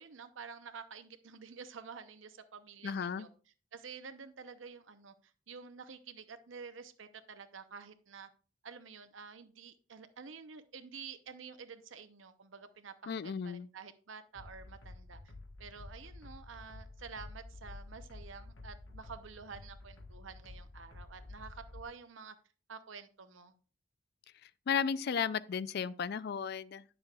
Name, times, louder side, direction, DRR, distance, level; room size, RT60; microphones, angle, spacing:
voice 1, 0.0-3.3 3.7-5.1 5.5-8.3 8.6-15.2 15.6-22.4 22.7-23.5, right 5 dB, 80° right, 0.8 m, -49 dB
voice 2, 2.8-3.3 13.1-13.7 24.7-26.8, left 7 dB, 55° left, 0.4 m, -34 dB
sound 1, 14.3-21.9, left 2 dB, 75° left, 1.4 m, -50 dB
9.6 x 7.0 x 2.4 m
head